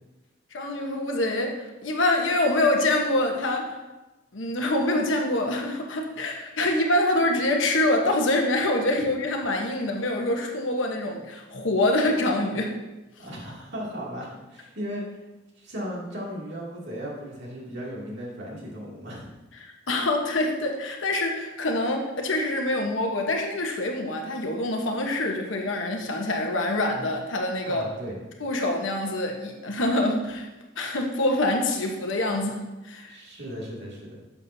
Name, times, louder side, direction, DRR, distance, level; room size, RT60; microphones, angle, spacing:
voice 1, 0.5-3.8 4.3-12.8 19.9-27.9 28.4-30.5 30.8-33.2, left 1 dB, 75° left, 2 dB, 1.1 m, -25 dB
voice 2, 13.2-15.2 15.6-19.3 27.6-28.2 33.1-34.2, equal, 60° right, -4 dB, 2.5 m, -36 dB
10.5 x 7.4 x 2.7 m, 1.1 s
head